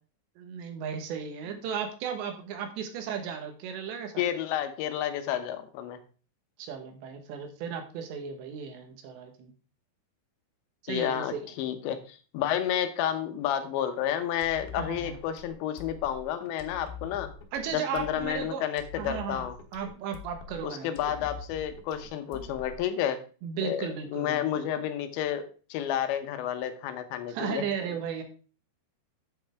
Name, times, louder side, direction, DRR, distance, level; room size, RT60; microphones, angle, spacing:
voice 1, 0.4-4.2 6.6-9.5 10.8-11.5 14.7-15.2 17.5-18.7 19.0-21.3 22.3-22.5 23.4-24.8 27.3-28.2, right 7 dB, 85° right, 6 dB, 3.5 m, -35 dB
voice 2, 4.2-6.0 10.9-17.3 17.7-19.6 20.6-23.2 23.6-27.6, left 10 dB, 90° left, 9 dB, 3.2 m, -31 dB
sound 1, 14.4-23.1, left 6 dB, 70° left, 3.0 m, -44 dB
9.0 x 8.0 x 3.5 m, 0.38 s
omnidirectional pair, 5.0 m